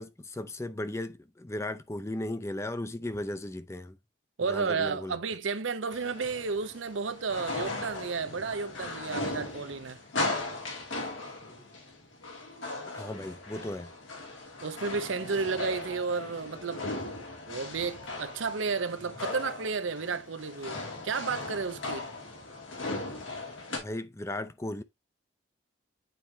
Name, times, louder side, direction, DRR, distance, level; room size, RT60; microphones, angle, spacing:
voice 1, 0.0-4.0 4.5-5.2 12.9-13.9 23.8-24.8, left 1 dB, 15° left, 0.4 m, -36 dB
voice 2, 4.4-10.0 14.6-16.8 17.5-20.8 21.0-22.0, right 5 dB, 90° right, 0.7 m, -32 dB
sound 1, 5.9-23.8, left 2 dB, 90° left, 2.3 m, -38 dB
9.2 x 4.4 x 2.7 m
head